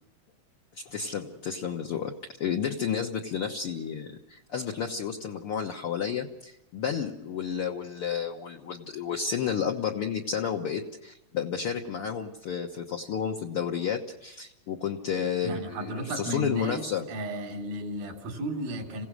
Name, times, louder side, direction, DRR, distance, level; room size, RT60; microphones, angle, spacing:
voice 1, 0.7-2.1 2.4-17.1, left 7 dB, 60° left, 2 dB, 1.6 m, -31 dB
voice 2, 15.4-19.1, right 1 dB, 85° right, 2 dB, 5.1 m, -34 dB
28.0 x 17.0 x 6.3 m, 0.90 s
omnidirectional pair, 4.0 m